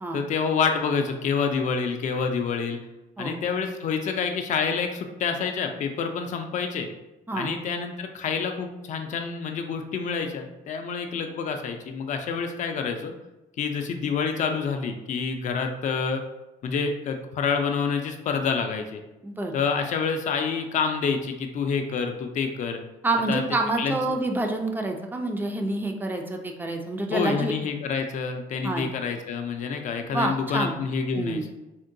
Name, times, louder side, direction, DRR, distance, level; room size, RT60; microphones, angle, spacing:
voice 1, 0.1-2.8 3.2-6.9 7.3-13.1 13.6-16.2 16.6-19.0 19.5-22.8 23.3-23.4 23.8-24.0 27.1-31.5, left 5 dB, 55° left, 5 dB, 0.4 m, -27 dB
voice 2, 23.0-27.5 28.6-28.9 30.1-30.7 31.1-31.4, right 2 dB, 10° right, 3 dB, 0.4 m, -27 dB
3.6 x 2.2 x 2.6 m, 0.99 s
cardioid pair, 110°, 16 cm